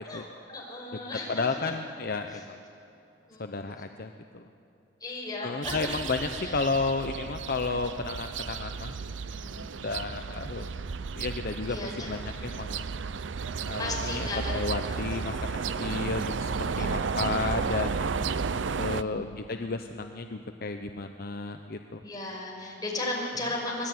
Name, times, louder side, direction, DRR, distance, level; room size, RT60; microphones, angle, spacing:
voice 1, 0.0-1.7 2.3-2.4 3.3-3.8 5.0-6.6 9.2-10.7 11.7-12.1 13.8-16.1 16.7-17.8 18.3-19.4 22.0-23.9, left 2 dB, 20° left, -2 dB, 5.7 m, -38 dB
voice 2, 1.3-2.6 3.4-4.5 5.4-8.9 9.8-10.7 11.2-12.8 13.6-15.4 15.8-18.0 18.8-22.0, left 3 dB, 55° left, 6 dB, 0.8 m, -32 dB
sound 1, 5.6-19.0, right 5 dB, 85° right, 0.6 m, -33 dB
24.0 x 19.0 x 9.5 m, 2.8 s
head